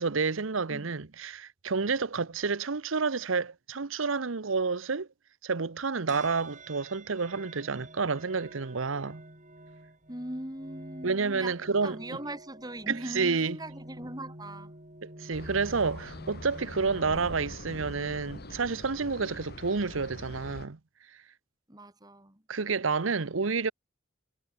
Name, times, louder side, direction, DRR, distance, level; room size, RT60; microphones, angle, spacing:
voice 1, 0.0-5.1 5.4-9.2 11.0-12.0 12.9-13.6 15.0-20.8 22.5-23.7, right 4 dB, 85° right, 0.9 m, -29 dB
sound 1, 6.1-19.6, right 1 dB, 40° right, 7.3 m, -49 dB
voice 2, 10.1-11.6 11.8-14.7 21.7-22.4, right 1 dB, 20° right, 4.8 m, -40 dB
sound 2, 15.3-20.7, left 1 dB, 50° left, 3.0 m, -43 dB
head